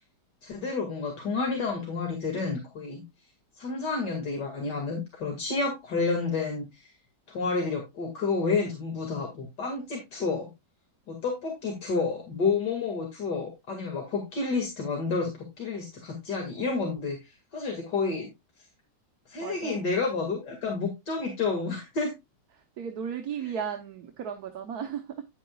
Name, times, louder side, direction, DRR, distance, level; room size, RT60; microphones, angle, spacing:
voice 1, 0.4-3.0 3.6-6.9 7.3-10.5 11.1-18.3 19.3-22.1, left 4 dB, 75° left, 1 dB, 2.7 m, -30 dB
voice 2, 19.4-19.8 22.5-25.2, right 7 dB, 65° right, 4 dB, 1.4 m, -35 dB
10.0 x 9.0 x 2.3 m, 0.21 s
omnidirectional pair, 1.9 m